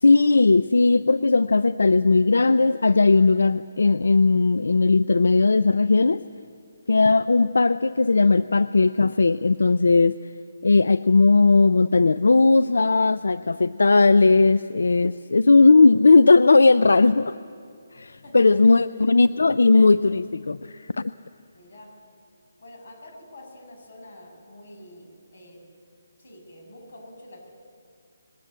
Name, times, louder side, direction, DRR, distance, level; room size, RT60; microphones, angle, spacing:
voice 1, 0.0-6.2 6.9-10.2 10.6-17.4 17.9-21.1, left 3 dB, 90° left, 14 dB, 0.4 m, -18 dB
voice 2, 18.2-18.8 21.5-21.9 22.6-25.6 26.2-27.5, left 1 dB, 50° left, 1 dB, 6.8 m, -46 dB
20.0 x 18.0 x 8.7 m, 2.3 s
hypercardioid pair, 170°, 0 cm